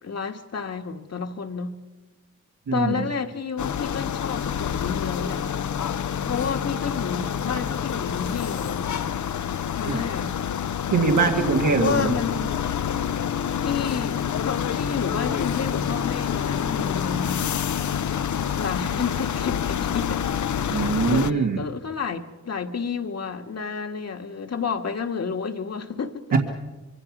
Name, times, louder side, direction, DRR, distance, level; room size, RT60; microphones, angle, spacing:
voice 1, 0.0-1.8 2.7-5.5 6.2-8.8 9.7-10.3 11.8-12.6 13.6-17.5 18.6-20.3 20.6-26.2, left 6 dB, 55° left, 1.7 m, -30 dB
voice 2, 2.7-3.0 9.9-10.0 10.9-12.1 20.7-21.6 26.3-26.4, right 4 dB, 85° right, 2.0 m, -22 dB
sound 1, 3.6-21.3, left 8 dB, 75° left, 0.7 m, -27 dB
25.5 x 24.0 x 6.1 m
wide cardioid pair, 100°, 30 cm